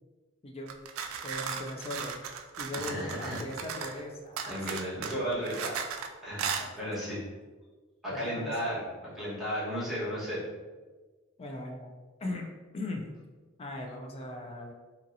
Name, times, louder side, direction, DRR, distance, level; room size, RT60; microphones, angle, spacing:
sound 1, 0.7-4.0 4.4-6.1 6.4-6.7, right 7 dB, 85° right, 0.3 m, -36 dB
voice 1, 1.2-2.2 2.6-4.8 6.6-7.2 8.1-9.4 11.4-12.5 12.7-13.1 13.6-14.7, left 1 dB, 30° left, 2 dB, 0.4 m, -39 dB
voice 2, 2.7-3.4 4.4-5.7 6.2-7.3 8.0-10.4, equal, ahead, -11 dB, 1.2 m, -34 dB
2.8 x 2.7 x 2.5 m, 1.3 s
head